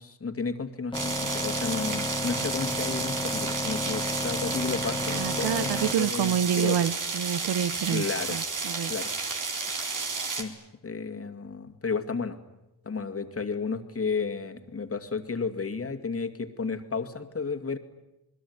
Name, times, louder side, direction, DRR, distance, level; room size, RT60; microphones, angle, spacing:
voice 1, 0.0-6.8 7.9-8.4 8.9-9.1 9.7-9.9 10.2-10.5 10.8-12.4 12.8-17.8, left 5 dB, 35° left, 2.5 m, -33 dB
sound 1, 0.9-5.9, left 1 dB, 10° left, 1.2 m, -32 dB
sound 2, 0.9-10.4, right 4 dB, 55° right, 3.9 m, -32 dB
voice 2, 5.1-8.0 8.3-8.9, right 9 dB, 85° right, 1.0 m, -28 dB
28.5 x 20.5 x 9.7 m
cardioid pair, 80°, 39 cm